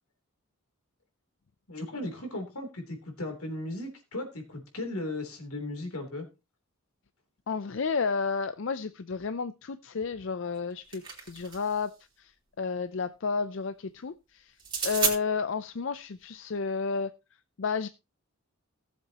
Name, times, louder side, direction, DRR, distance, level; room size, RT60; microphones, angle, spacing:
voice 1, 1.7-6.3, left 2 dB, 85° left, 3.2 m, -36 dB
voice 2, 7.5-12.3 12.6-14.5 14.8-17.1 17.6-17.9, left 5 dB, 60° left, 0.5 m, -31 dB
sound 1, 10.5-11.8 14.6-15.2, right 6 dB, 20° right, 3.0 m, -31 dB
17.5 x 7.5 x 2.9 m
head